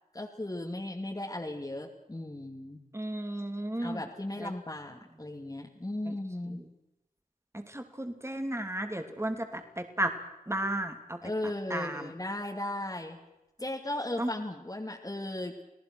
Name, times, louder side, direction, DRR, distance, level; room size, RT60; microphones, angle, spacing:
voice 1, 0.1-2.8 3.8-6.6 11.2-13.2 13.6-15.6, left 1 dB, 25° left, 1 dB, 2.5 m, -36 dB
voice 2, 2.9-4.0 4.4-4.5 6.1-6.2 7.5-10.1 10.5-11.2 11.7-12.1 14.2-14.3, right 1 dB, 20° right, 6 dB, 3.0 m, -33 dB
29.5 x 18.5 x 6.3 m, 0.94 s
wide cardioid pair, 50°, 15 cm